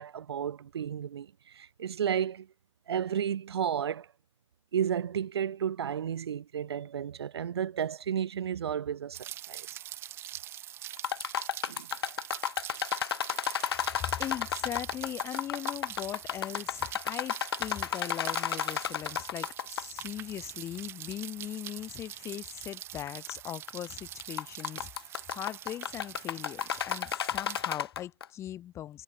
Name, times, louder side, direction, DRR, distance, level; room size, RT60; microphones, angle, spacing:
voice 1, 0.0-2.5 2.9-4.1 4.7-9.7 11.7-11.9, right 8 dB, 50° right, 2.4 m, -32 dB
Rain, 9.1-27.8, right 12 dB, 15° right, 0.8 m, -44 dB
sound 1, 11.0-20.0 20.3-20.4 21.1-21.2 21.8-21.9 23.1-23.3 23.7-23.9 24.2-28.2, left 9 dB, 50° left, 0.4 m, -32 dB
voice 2, 14.2-29.0, left 11 dB, 15° left, 3.1 m, -40 dB
figure-of-eight pair, 125°, 17 cm